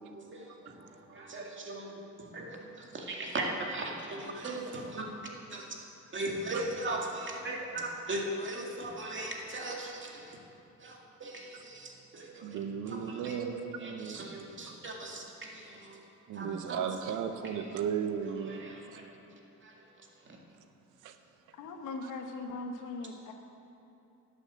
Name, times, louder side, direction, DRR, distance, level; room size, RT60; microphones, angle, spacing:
voice 1, 0.1-5.0 5.5-5.6 6.1-10.4 10.8-12.6 12.8-13.5 13.8-16.0 16.3-16.8 17.4-17.7 18.4-19.0 19.6-19.8, right 2 dB, 40° right, -1 dB, 2.1 m, -39 dB
voice 2, 12.4-14.2 16.3-18.7 21.0-21.1 22.0-22.1, right 7 dB, 85° right, 8 dB, 0.7 m, -35 dB
voice 3, 21.6-23.3, left 3 dB, 90° left, 4 dB, 1.2 m, -39 dB
11.0 x 7.1 x 7.5 m, 2.8 s
cardioid pair, 90°, 30 cm